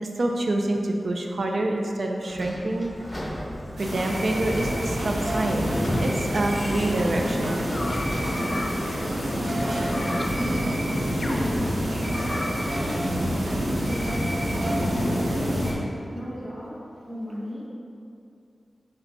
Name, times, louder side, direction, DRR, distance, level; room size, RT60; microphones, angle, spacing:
voice 1, 0.0-2.9 3.8-5.7 6.0-7.6, right 1 dB, 65° right, 2 dB, 0.5 m, -26 dB
Sliding door / Squeak, 2.2-8.3, left 1 dB, 20° left, 0.9 m, -35 dB
sound 1, 3.8-15.7, equal, 90° right, 1.4 m, -27 dB
sound 2, 7.7-12.7, left 1 dB, 50° left, 0.6 m, -36 dB
voice 2, 9.1-15.3 16.1-16.8 17.0-17.6, equal, 10° right, -9 dB, 1.2 m, -37 dB
5.4 x 4.0 x 4.5 m, 2.5 s
cardioid pair, 55°, 0 cm